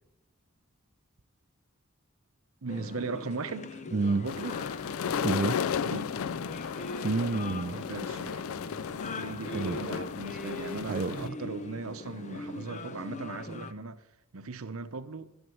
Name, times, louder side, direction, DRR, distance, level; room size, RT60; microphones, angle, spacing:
voice 1, 2.6-3.8 4.1-4.6 5.8-6.1 7.7-8.4 9.1-14.0 14.3-15.3, right 3 dB, 75° right, 0.9 m, -38 dB
sound 1, 2.7-13.7, left 2 dB, 35° left, 0.7 m, -41 dB
voice 2, 3.9-4.3 5.2-5.6 7.0-7.8 9.5-9.8 10.9-11.4, right 4 dB, 40° right, 0.4 m, -29 dB
sound 2, 4.2-11.3, left 7 dB, 70° left, 0.4 m, -34 dB
12.5 x 11.0 x 7.8 m
head